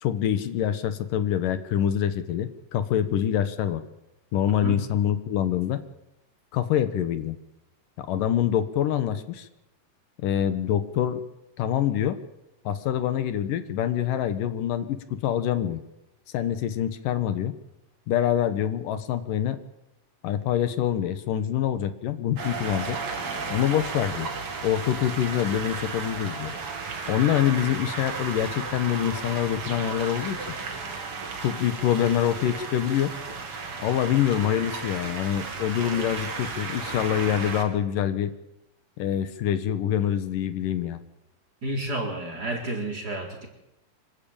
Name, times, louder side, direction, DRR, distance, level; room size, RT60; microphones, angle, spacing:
voice 1, 0.0-3.8 4.3-5.8 6.5-7.4 8.0-9.5 10.2-11.2 11.6-12.2 12.6-15.8 16.3-17.5 18.1-19.6 20.2-23.0 23.5-24.3 24.6-26.5 27.1-30.4 31.4-33.1 33.8-38.3 39.0-41.0, left 10 dB, 75° left, 11 dB, 2.8 m, -25 dB
sound 1, 22.4-37.6, right 4 dB, 45° right, 3.3 m, -34 dB
voice 2, 41.6-43.5, right 1 dB, 25° right, 1 dB, 4.3 m, -30 dB
25.5 x 14.0 x 8.8 m, 0.92 s
omnidirectional pair, 3.9 m